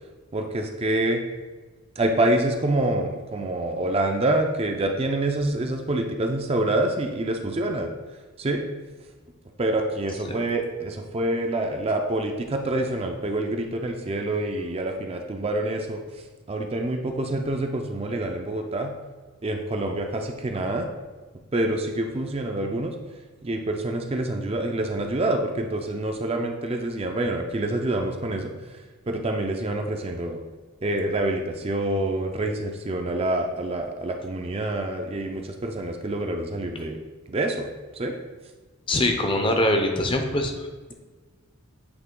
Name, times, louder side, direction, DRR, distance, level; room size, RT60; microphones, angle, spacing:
voice 1, 0.3-1.2 2.0-7.9 8.4-8.6 9.6-16.0 16.5-18.9 19.4-20.9 21.5-22.9 23.4-28.5 29.1-30.4 30.8-37.0 37.3-37.7 37.9-38.1, right 1 dB, 25° right, 4 dB, 0.4 m, -26 dB
voice 2, 38.9-40.7, left 1 dB, 25° left, 4 dB, 0.5 m, -23 dB
7.9 x 3.2 x 3.7 m, 1.3 s
head